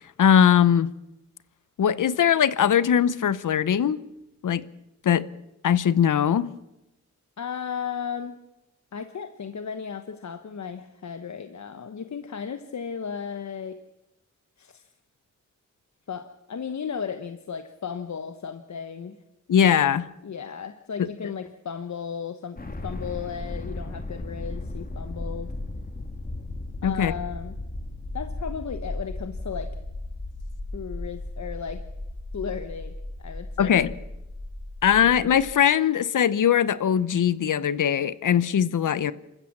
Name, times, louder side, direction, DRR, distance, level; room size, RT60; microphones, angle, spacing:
voice 1, 0.2-0.9 1.8-4.0 4.4-4.6 5.0-5.3 5.6-6.5 19.5-20.1 21.0-21.1 26.8-27.1 33.6-33.9 34.8-39.1, left 8 dB, 85° left, 0.9 m, -20 dB
voice 2, 7.4-8.4 8.9-13.8 14.6-14.9 16.1-19.2 20.2-25.5 26.8-27.5 28.1-29.7 30.7-31.8 32.3-32.9 33.2-33.9, left 7 dB, 65° left, 1.2 m, -35 dB
sound 1, 22.6-35.6, left 2 dB, 30° left, 2.1 m, -36 dB
27.5 x 14.5 x 7.4 m
cardioid pair, 80°, 30 cm